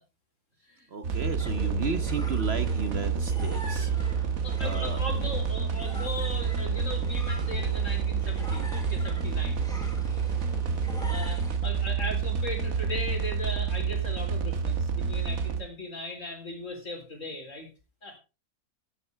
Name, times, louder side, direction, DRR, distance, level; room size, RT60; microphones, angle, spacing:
voice 1, 0.9-4.3 4.6-5.0, right 4 dB, 50° right, 9 dB, 1.1 m, -34 dB
sound 1, 1.0-15.6, right 6 dB, 70° right, 1.6 m, -29 dB
sound 2, 1.4-11.6, right 1 dB, ahead, 3.5 m, -42 dB
voice 2, 4.4-9.7 11.1-17.7 18.0-18.2, left 1 dB, 60° left, 3 dB, 4.0 m, -38 dB
13.5 x 10.5 x 3.4 m, 0.30 s
omnidirectional pair, 1.5 m